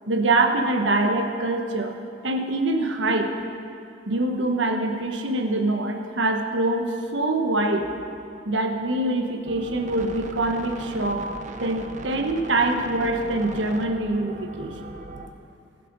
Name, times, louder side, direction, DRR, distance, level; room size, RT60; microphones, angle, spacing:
voice 1, 0.1-1.9 2.2-3.3 4.1-7.9 8.4-11.3 11.6-14.7, right 2 dB, 85° right, 4 dB, 1.2 m, -24 dB
sound 1, 9.4-15.3, right 2 dB, 45° right, 0.7 m, -39 dB
19.5 x 7.5 x 5.3 m, 2.6 s
head